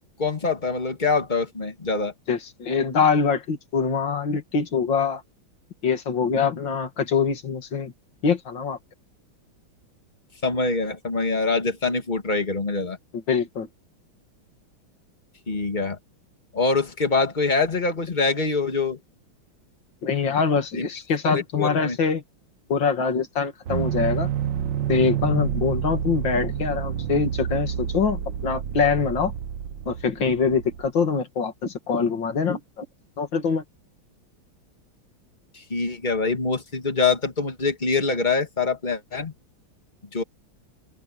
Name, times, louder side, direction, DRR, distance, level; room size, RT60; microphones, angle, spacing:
voice 1, 0.0-2.1 10.4-13.0 15.5-16.0 16.5-19.0 20.8-20.9 21.2-22.0 35.5-39.3 40.1-40.2, left 4 dB, 20° left, 2.2 m, -24 dB
voice 2, 2.3-5.2 5.8-7.9 8.2-8.8 13.3-13.7 20.0-22.2 22.7-24.3 24.9-29.3 29.9-32.8 33.2-33.6, left 5 dB, 60° left, 3.0 m, -24 dB
sound 1, 23.7-30.9, right 9 dB, 60° right, 1.8 m, -28 dB
omnidirectional pair, 2.3 m